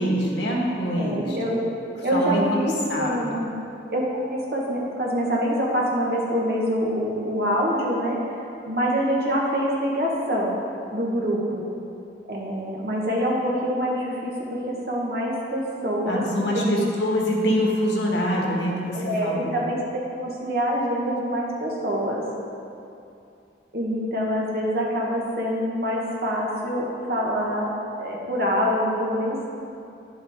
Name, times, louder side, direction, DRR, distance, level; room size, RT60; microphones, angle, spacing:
voice 1, 0.0-1.4 2.1-3.4 16.1-19.6, equal, 85° left, -2 dB, 1.6 m, -25 dB
voice 2, 0.9-1.6 2.0-3.5 3.9-4.0 4.3-8.2 8.7-10.6 10.9-11.6 12.3-16.3 16.5-16.7 18.9-22.2 23.7-29.5, equal, 60° right, -3 dB, 1.5 m, -25 dB
9.9 x 7.3 x 3.7 m, 2.6 s
head